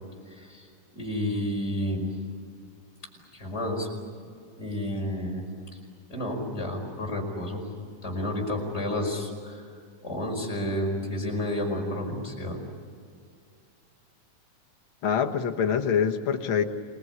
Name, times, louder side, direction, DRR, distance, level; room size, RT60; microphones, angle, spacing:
voice 1, 0.3-0.7 0.9-2.1 3.3-3.9 4.6-5.4 6.1-7.6 8.0-9.7 10.0-12.6, left 1 dB, 15° left, 0 dB, 5.3 m, -30 dB
voice 2, 15.0-16.6, left 7 dB, 60° left, 5 dB, 1.3 m, -25 dB
28.0 x 20.5 x 9.7 m, 2.3 s
omnidirectional pair, 4.1 m